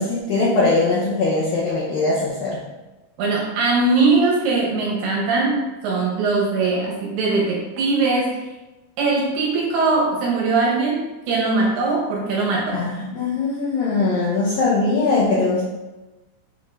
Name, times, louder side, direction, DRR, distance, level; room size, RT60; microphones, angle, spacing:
voice 1, 0.0-2.6 12.7-15.6, left 3 dB, 80° left, -7 dB, 2.1 m, -21 dB
voice 2, 3.2-5.6 5.8-8.5 9.0-11.0 11.3-12.8, right 3 dB, 70° right, -4 dB, 2.9 m, -20 dB
7.5 x 3.7 x 3.8 m, 1.1 s
omnidirectional pair, 5.3 m